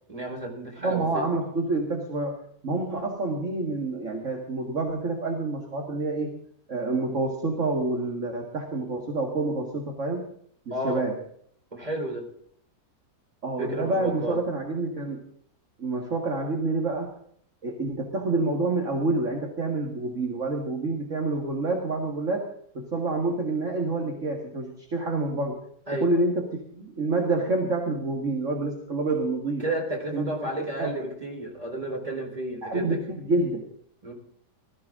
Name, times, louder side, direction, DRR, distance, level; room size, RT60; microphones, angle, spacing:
voice 1, 0.1-1.3 10.7-11.1 11.7-12.3 13.6-14.4 25.9-26.1 29.6-33.0 34.0-34.1, right 1 dB, 20° right, 0 dB, 4.4 m, -32 dB
voice 2, 0.8-6.4 6.7-10.3 10.7-11.2 13.4-15.2 15.8-17.1 17.6-22.5 22.7-25.6 26.0-29.6 30.1-31.0 32.6-33.7, right 2 dB, 45° right, 1 dB, 2.2 m, -28 dB
20.5 x 14.5 x 3.8 m, 0.63 s
omnidirectional pair, 1.9 m